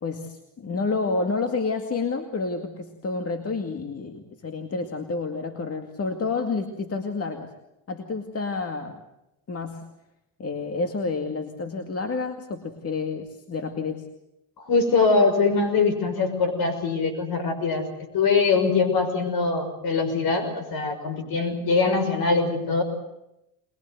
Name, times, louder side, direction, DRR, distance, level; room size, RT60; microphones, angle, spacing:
voice 1, 0.0-7.5 7.9-9.0 9.5-9.8 10.4-14.0, left 4 dB, 35° left, 6 dB, 2.2 m, -29 dB
voice 2, 14.6-17.9 18.1-22.8, left 4 dB, 60° left, 8 dB, 6.2 m, -22 dB
22.0 x 22.0 x 8.0 m, 0.87 s
supercardioid pair, 90°, 41 cm